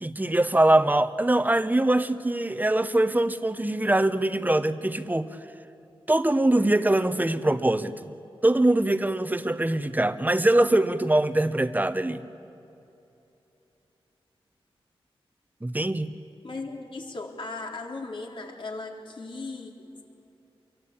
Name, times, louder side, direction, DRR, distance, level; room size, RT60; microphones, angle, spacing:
voice 1, 0.0-5.3 6.1-8.1 8.4-12.2 15.6-16.2, right 1 dB, 15° right, 11 dB, 1.2 m, -23 dB
voice 2, 16.4-19.8, left 3 dB, 60° left, 1 dB, 3.8 m, -37 dB
28.0 x 23.5 x 8.7 m, 2.8 s
wide cardioid pair, 75°, 10 cm